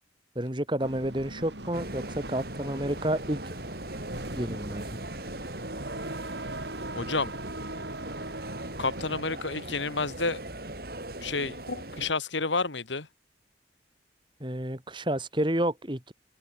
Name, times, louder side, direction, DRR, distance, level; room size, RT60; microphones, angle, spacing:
voice 1, 0.4-3.5 4.3-5.0 14.4-16.1, right 1 dB, 25° right, 2.4 m, -30 dB
sound 1, 0.8-9.2, right 1 dB, 70° right, 6.9 m, -40 dB
sound 2, 1.7-12.1, right 1 dB, 55° right, 7.9 m, -40 dB
voice 2, 6.9-7.3 8.8-10.4 11.2-13.1, left 4 dB, 85° left, 2.2 m, -30 dB
head